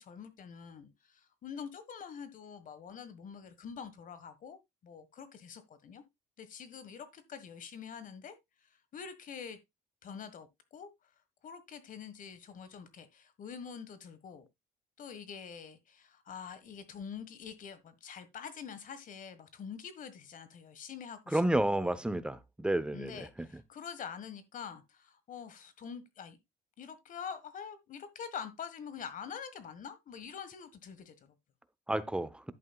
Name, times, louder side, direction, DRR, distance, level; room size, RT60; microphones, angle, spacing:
voice 1, 0.0-6.0 6.4-8.4 8.6-9.6 10.0-10.9 11.4-14.5 15.0-21.4 21.7-22.0 22.9-26.4 26.8-31.3, left 7 dB, 50° left, 1.5 m, -46 dB
voice 2, 21.3-23.2 31.9-32.3, right 1 dB, 5° right, 0.8 m, -30 dB
11.0 x 8.4 x 2.3 m
cardioid pair, 110°, 17 cm